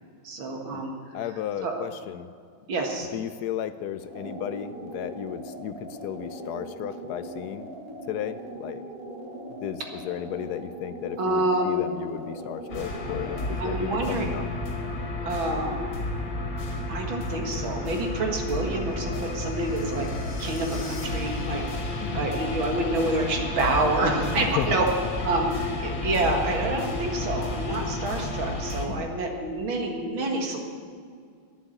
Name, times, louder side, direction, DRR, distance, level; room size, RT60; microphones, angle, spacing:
voice 1, 0.2-1.2 1.6-1.8 2.7-3.1 11.2-11.7 13.6-14.3 15.2-15.9 16.9-20.1 20.4-21.6 22.1-24.9 25.2-30.6, right 2 dB, 70° right, 2 dB, 2.5 m, -27 dB
voice 2, 1.1-2.3 3.1-7.7 8.1-8.8 9.6-14.6 22.0-22.3 24.3-24.8 28.9-29.2, left 11 dB, 80° left, 12 dB, 0.9 m, -34 dB
sound 1, 4.0-13.6, right 1 dB, 45° right, 2.1 m, -40 dB
sound 2, 12.7-28.9, left 2 dB, 65° left, 2.6 m, -31 dB
11.5 x 9.8 x 8.7 m, 2.1 s
omnidirectional pair, 2.3 m